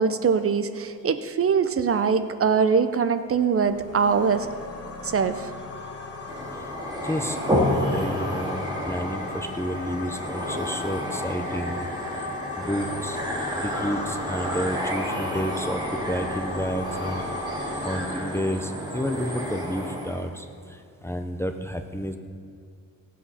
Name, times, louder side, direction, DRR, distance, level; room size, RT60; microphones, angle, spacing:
voice 1, 0.0-4.5 5.0-5.5, right 6 dB, 40° right, 10 dB, 0.6 m, -22 dB
sound 1, 3.6-18.0, left 3 dB, 40° left, 1.3 m, -37 dB
sound 2, 6.3-20.2, equal, 10° right, 2.4 m, -30 dB
voice 2, 7.0-11.9 12.6-13.2 13.6-15.8 16.1-17.2 17.8-20.5 21.0-22.2, equal, 5° left, 5 dB, 0.5 m, -30 dB
17.5 x 8.4 x 5.6 m, 2.4 s
wide cardioid pair, 165°, 35 cm